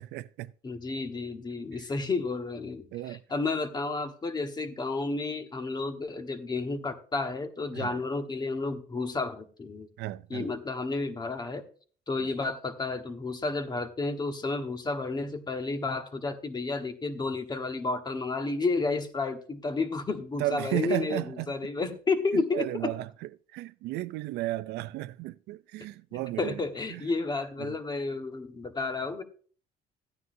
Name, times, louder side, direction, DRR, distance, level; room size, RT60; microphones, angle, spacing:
voice 1, 0.0-0.5 2.9-3.2 7.8-7.9 10.0-10.5 20.4-21.5 22.3-26.6 26.9-27.0 27.6-27.8, right 17 dB, 85° right, 0.4 m, -34 dB
voice 2, 0.6-9.9 10.3-11.6 12.1-22.9 26.1-29.2, left 3 dB, 25° left, 1.3 m, -31 dB
14.0 x 9.5 x 2.7 m
cardioid pair, 110°, 17 cm